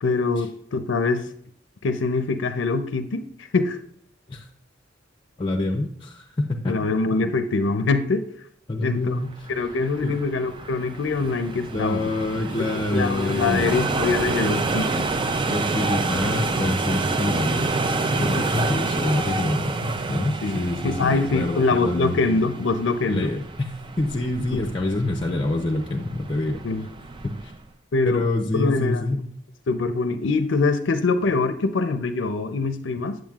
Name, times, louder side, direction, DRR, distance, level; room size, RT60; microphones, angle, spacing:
voice 1, 0.0-1.3 1.8-3.8 6.7-8.3 8.8-9.2 9.5-12.1 12.6-15.1 20.4-23.3 24.5-24.6 26.6-26.9 27.9-28.3 28.5-29.0 29.7-33.2, left 3 dB, 75° left, 9 dB, 0.5 m, -24 dB
voice 2, 5.4-6.8 8.7-9.3 10.0-10.2 11.7-13.8 15.5-17.7 18.1-22.2 23.1-26.6 27.2-27.5 28.0-29.3, left 2 dB, 25° left, 2 dB, 0.6 m, -26 dB
sound 1, 9.3-27.6, right 3 dB, 25° right, 0.4 m, -28 dB
8.9 x 7.7 x 2.4 m, 0.66 s
head